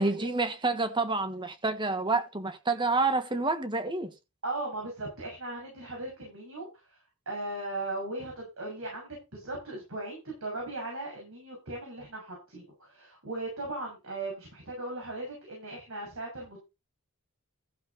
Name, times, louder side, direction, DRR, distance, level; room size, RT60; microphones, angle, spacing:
voice 1, 0.0-4.1, right 3 dB, 20° right, 1.4 m, -28 dB
voice 2, 4.4-7.0 7.2-16.6, right 2 dB, 65° right, 6.8 m, -38 dB
14.5 x 7.2 x 4.1 m
head